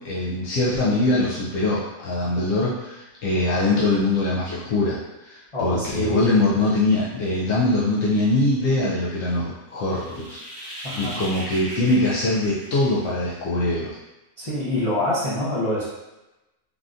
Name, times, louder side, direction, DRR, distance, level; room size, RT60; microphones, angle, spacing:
voice 1, 0.0-13.9, left 2 dB, 75° left, -7 dB, 1.0 m, -23 dB
voice 2, 5.5-6.2 10.8-11.2 14.4-15.9, left 1 dB, 45° left, -10 dB, 0.4 m, -26 dB
sound 1, 9.8-13.4, right 1 dB, 30° right, 0.4 m, -37 dB
3.4 x 2.5 x 2.3 m, 1.0 s
omnidirectional pair, 1.4 m